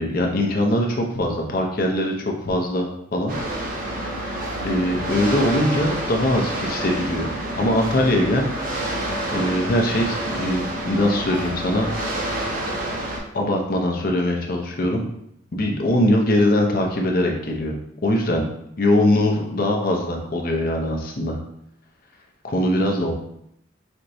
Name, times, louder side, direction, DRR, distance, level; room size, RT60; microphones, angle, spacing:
voice 1, 0.0-3.3 4.6-7.3 7.6-8.5 9.3-11.9 13.3-15.0 15.5-17.7 18.0-18.4 18.8-21.4 22.4-23.1, left 1 dB, 50° left, 1 dB, 0.6 m, -21 dB
sound 1, 3.3-13.2, right 1 dB, 50° right, 0.8 m, -28 dB
4.3 x 2.9 x 2.6 m, 0.74 s
head